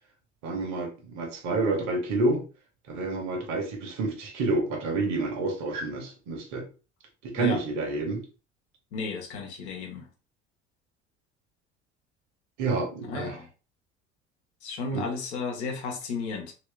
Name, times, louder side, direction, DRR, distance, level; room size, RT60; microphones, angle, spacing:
voice 1, 0.4-2.4 2.9-6.6 7.2-8.2 12.6-13.4 14.9-15.1, right 3 dB, 55° right, 1.3 m, -29 dB
voice 2, 8.9-10.0 13.1-13.5 14.6-16.5, left 4 dB, 70° left, 1.0 m, -33 dB
3.1 x 3.0 x 3.3 m
figure-of-eight pair, 60°, 35 cm